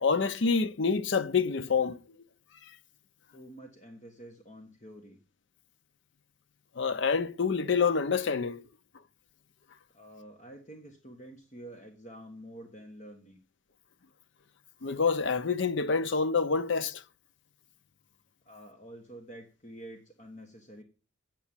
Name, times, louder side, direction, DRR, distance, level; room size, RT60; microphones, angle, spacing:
voice 1, 0.0-2.0 6.8-8.6 14.8-17.0, left 5 dB, 65° left, 0.6 m, -27 dB
voice 2, 3.3-5.2 9.9-13.4 18.4-20.8, right 1 dB, 35° left, 1.3 m, -48 dB
8.1 x 7.5 x 8.8 m
head